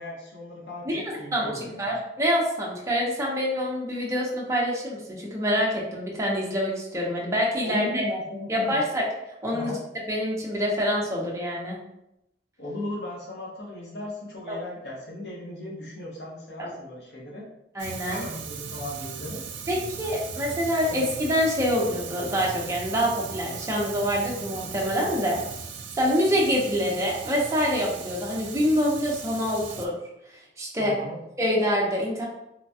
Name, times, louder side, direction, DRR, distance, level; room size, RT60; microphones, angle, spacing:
voice 1, 0.0-1.9 7.6-8.8 9.5-9.8 12.6-17.5 18.1-19.4 20.9-21.0 30.8-31.2, left 1 dB, 70° left, -4 dB, 0.8 m, -37 dB
voice 2, 1.8-8.0 8.5-9.0 9.4-9.7 10.1-11.8 14.5-14.6 16.6-16.7 17.7-18.2 19.7-25.4 26.0-29.9 30.6-30.9 31.4-32.2, equal, 15° right, -3 dB, 0.5 m, -26 dB
Fire, 17.8-29.9, right 5 dB, 90° right, 0.4 m, -38 dB
3.1 x 2.2 x 2.6 m, 0.84 s
head